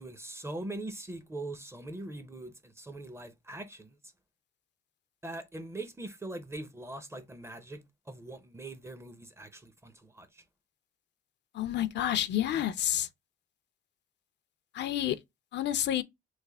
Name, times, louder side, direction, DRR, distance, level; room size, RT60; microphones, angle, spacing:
voice 1, 0.0-4.0 5.2-10.4, right 2 dB, 15° right, 0.5 m, -42 dB
voice 2, 11.5-13.1 14.7-15.2 15.5-16.0, left 12 dB, 60° left, 0.4 m, -29 dB
3.2 x 2.1 x 3.3 m
cardioid pair, 90°, 20 cm